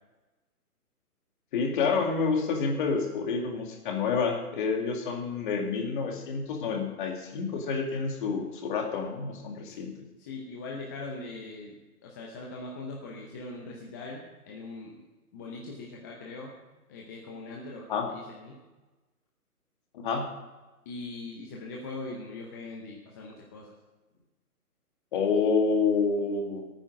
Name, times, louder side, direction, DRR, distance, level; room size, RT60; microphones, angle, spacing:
voice 1, 1.5-9.9 17.9-18.1 19.9-20.3 25.1-26.7, left 5 dB, 35° left, 2 dB, 2.3 m, -28 dB
voice 2, 10.2-15.0 15.3-16.5 16.9-18.6 20.9-23.7, left 2 dB, 10° left, -2 dB, 0.7 m, -41 dB
17.5 x 9.1 x 5.1 m, 1.1 s
figure-of-eight pair, 145°, 45 cm